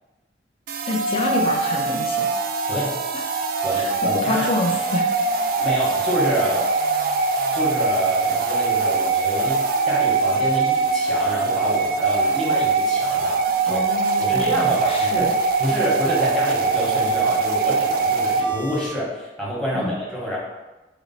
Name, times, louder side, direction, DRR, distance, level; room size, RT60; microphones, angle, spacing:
sound 1, 0.7-18.9, right 4 dB, 50° right, 0.3 m, -22 dB
voice 1, 0.9-2.4 3.7-5.1 13.7-15.3 19.7-19.9, left 2 dB, 30° left, 1 dB, 0.5 m, -27 dB
voice 2, 3.6-4.5 5.6-6.7 7.5-13.8 14.2-15.3 15.6-20.4, equal, 5° left, -6 dB, 1.0 m, -27 dB
4.3 x 2.0 x 4.0 m, 1.1 s
head